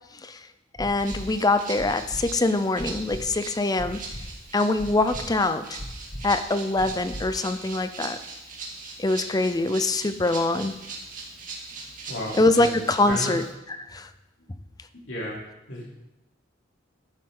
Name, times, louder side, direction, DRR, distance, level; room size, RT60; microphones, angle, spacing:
sound 1, 0.8-1.2 1.8-2.2 2.8-3.2 3.8-4.2 4.8-5.2 5.8-6.2 6.8-7.2 7.8-7.9, equal, 45° left, 1.8 m, -37 dB
voice 1, 0.8-4.0 4.5-5.8 6.2-8.2 9.0-10.7 12.4-13.4 13.8-14.1, left 2 dB, 20° left, 11 dB, 0.5 m, -24 dB
Rattle (instrument), 1.0-13.5, right 3 dB, 45° right, 2.4 m, -40 dB
voice 2, 12.1-12.7 13.0-13.3 14.5-14.6 14.9-15.4 15.7-15.9, left 1 dB, 80° left, -6 dB, 3.4 m, -33 dB
12.0 x 9.7 x 3.9 m, 0.94 s
head